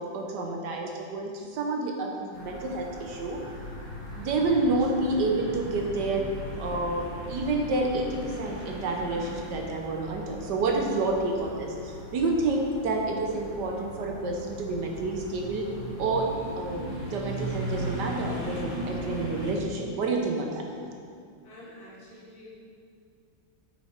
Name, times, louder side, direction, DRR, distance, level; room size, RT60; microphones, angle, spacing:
voice 1, 0.0-3.4 4.2-6.2 6.6-15.6 16.0-16.2 16.6-20.6, right 2 dB, 65° right, 1 dB, 1.3 m, -29 dB
sound 1, 2.3-19.5, equal, 45° left, 1.5 m, -38 dB
voice 2, 21.4-22.5, left 1 dB, 85° left, -7 dB, 2.9 m, -48 dB
8.2 x 6.3 x 4.3 m, 2.2 s
omnidirectional pair, 2.2 m